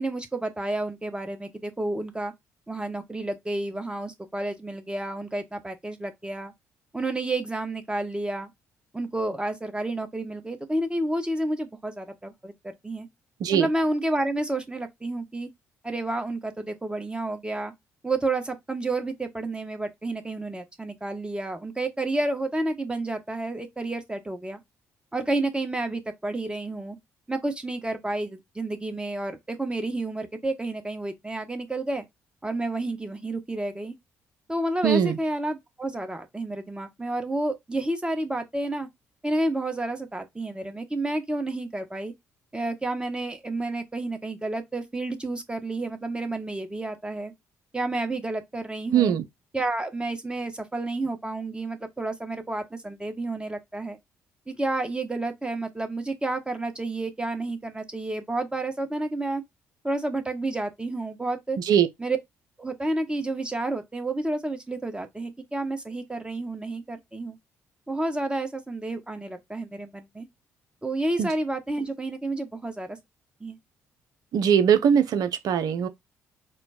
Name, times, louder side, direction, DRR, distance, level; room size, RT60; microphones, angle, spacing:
voice 1, 0.0-2.3 2.7-6.5 6.9-8.5 8.9-13.1 13.5-15.5 15.8-17.7 18.0-24.6 25.1-27.0 27.3-32.0 32.4-33.9 34.5-38.9 39.2-42.1 42.5-47.3 47.7-49.1 49.5-54.0 54.5-59.4 59.8-61.6 62.0-62.2 62.6-67.4 67.9-70.3 70.8-73.0 73.4-73.6, right 2 dB, 15° right, 1.3 m, -30 dB
voice 2, 34.8-35.2 48.9-49.2 61.6-61.9 71.2-71.3 74.3-75.9, right 8 dB, 65° right, 0.7 m, -21 dB
4.4 x 2.3 x 4.2 m
hypercardioid pair, 45°, 7 cm